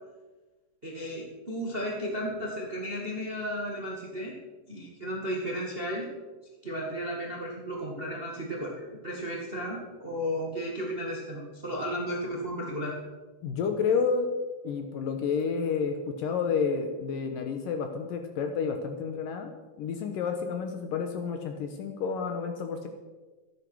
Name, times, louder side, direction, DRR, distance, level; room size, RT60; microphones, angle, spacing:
voice 1, 0.8-4.4 4.7-6.0 6.6-13.0, equal, 20° right, -1 dB, 1.5 m, -34 dB
voice 2, 13.4-14.3 14.6-19.5 19.8-22.9, left 5 dB, 70° left, 5 dB, 2.4 m, -30 dB
13.5 x 10.0 x 6.3 m, 1.2 s
omnidirectional pair, 4.6 m